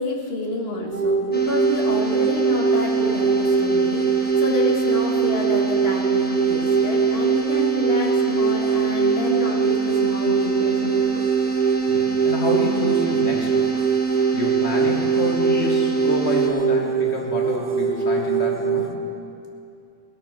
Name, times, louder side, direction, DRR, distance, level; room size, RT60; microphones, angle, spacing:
voice 1, 0.0-11.2, left 2 dB, 60° left, -1 dB, 2.1 m, -29 dB
sound 1, 0.9-18.9, right 6 dB, 45° right, 0.8 m, -23 dB
sound 2, 1.3-16.5, right 4 dB, 10° left, 1.0 m, -25 dB
voice 2, 11.9-13.7 14.3-18.9, left 1 dB, 80° left, 0 dB, 2.3 m, -27 dB
20.0 x 8.6 x 6.6 m, 2.5 s
omnidirectional pair, 1.1 m